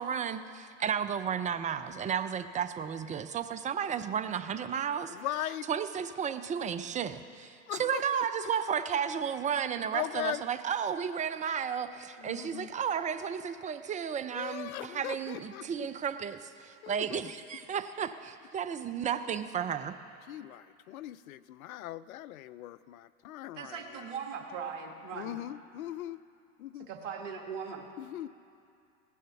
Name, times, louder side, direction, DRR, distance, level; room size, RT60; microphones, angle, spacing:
voice 1, 0.0-5.2 5.7-19.9, right 8 dB, 20° right, 12 dB, 0.5 m, -33 dB
voice 2, 5.1-5.7 7.7-8.7 9.9-10.4 12.2-12.7 14.3-15.9 16.8-17.2 20.3-24.1 25.1-26.2 26.6-26.9 28.0-28.3, left 13 dB, 80° left, 17 dB, 0.6 m, -39 dB
voice 3, 23.6-25.4 26.9-27.9, right 6 dB, 60° right, 2 dB, 1.6 m, -39 dB
16.5 x 10.5 x 5.8 m, 2.5 s
hypercardioid pair, 95°, 42 cm